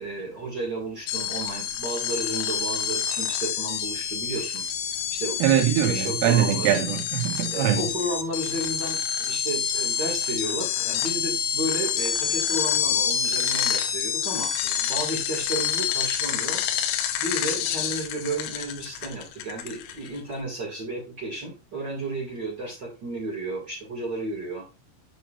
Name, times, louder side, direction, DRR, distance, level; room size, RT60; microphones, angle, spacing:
voice 1, 0.0-4.6 5.1-5.4 5.8-6.8 7.5-16.6 17.2-24.6, right 2 dB, 60° right, 1.1 m, -33 dB
sound 1, 1.1-20.2, left 8 dB, 80° left, 3.4 m, -28 dB
voice 2, 5.4-7.8, right 10 dB, 80° right, 3.8 m, -22 dB
9.1 x 6.0 x 2.5 m
omnidirectional pair, 5.8 m